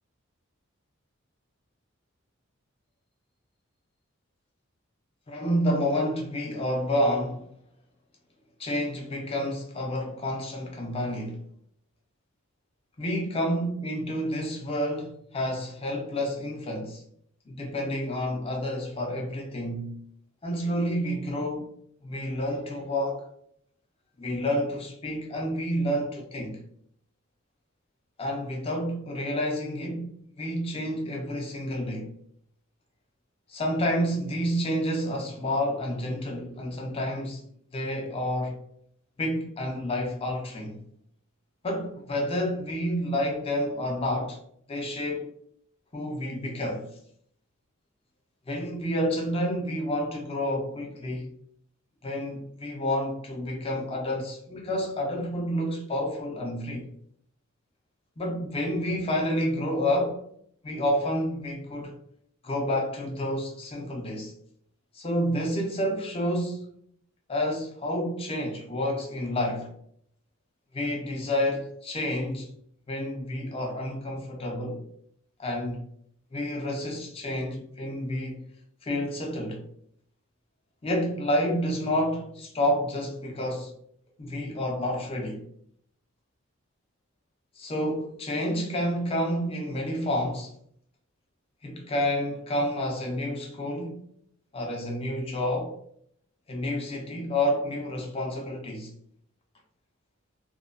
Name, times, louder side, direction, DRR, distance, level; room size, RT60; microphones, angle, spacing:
voice 1, 5.3-7.4 8.6-11.4 13.0-17.0 17.5-20.0 20.4-21.7 22.0-23.3 24.2-26.6 28.2-32.1 33.5-37.4 37.7-38.6 39.2-40.8 41.6-44.4 44.7-45.3 45.9-46.9 48.5-51.3 52.0-56.9 58.2-60.2 60.6-61.9 62.4-64.3 64.9-66.6 67.3-69.7 70.7-72.5 72.9-74.8 75.4-75.8 76.3-78.4 78.8-79.6 80.8-83.7 84.2-85.4 87.6-90.5 91.6-94.0 94.5-95.8 96.5-98.9, equal, 25° left, 0.6 m, -29 dB
2.9 x 2.2 x 2.5 m
head